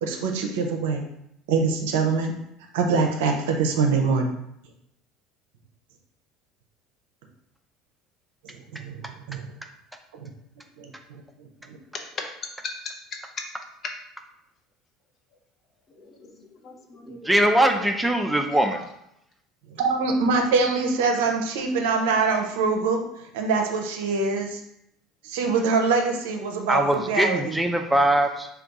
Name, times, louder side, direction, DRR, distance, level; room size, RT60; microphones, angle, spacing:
voice 1, 0.0-1.0 1.5-2.3 2.7-4.3 8.4-9.5 10.2-10.3 10.8-11.2 11.7-11.8 19.8-23.0 23.3-24.6 25.2-27.6, right 4 dB, 75° right, 3 dB, 0.5 m, -24 dB
voice 2, 16.0-17.8, left 3 dB, 40° left, 2 dB, 0.8 m, -40 dB
voice 3, 17.1-18.9 26.7-28.5, right 1 dB, 5° right, 4 dB, 0.5 m, -21 dB
3.4 x 2.3 x 3.9 m, 0.79 s
hypercardioid pair, 75°, 0 cm